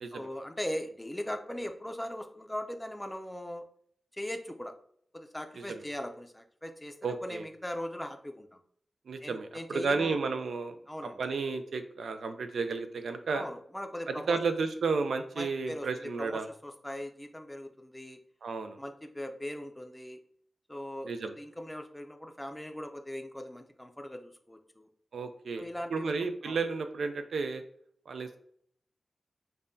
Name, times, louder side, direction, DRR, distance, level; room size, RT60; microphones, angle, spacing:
voice 1, 0.1-3.6 4.1-4.7 5.1-8.6 9.2-10.2 10.9-11.2 13.3-14.4 15.4-18.2 18.8-20.2 20.7-24.9 25.6-26.6, left 1 dB, 10° left, 6 dB, 0.4 m, -40 dB
voice 2, 7.0-7.5 9.1-10.7 11.0-13.5 14.1-16.5 18.4-18.8 21.0-21.4 25.1-25.6 25.9-27.6 28.1-28.4, right 4 dB, 85° right, 8 dB, 0.4 m, -32 dB
5.3 x 2.2 x 2.6 m, 0.64 s
cardioid pair, 70°, 0 cm